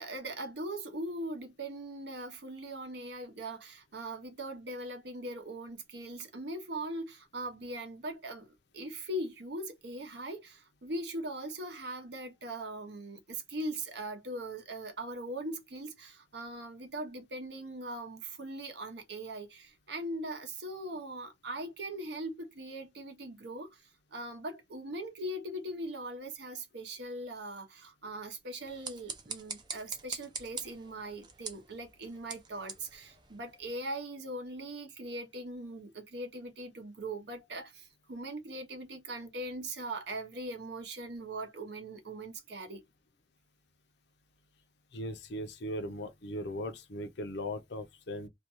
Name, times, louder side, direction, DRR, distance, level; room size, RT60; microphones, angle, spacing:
voice 1, 0.0-42.8, right 1 dB, 60° right, 0.8 m, -40 dB
sound 1, 28.6-33.9, right 5 dB, 25° right, 0.4 m, -44 dB
voice 2, 44.9-48.3, equal, 60° left, 0.5 m, -38 dB
2.5 x 2.2 x 2.9 m
head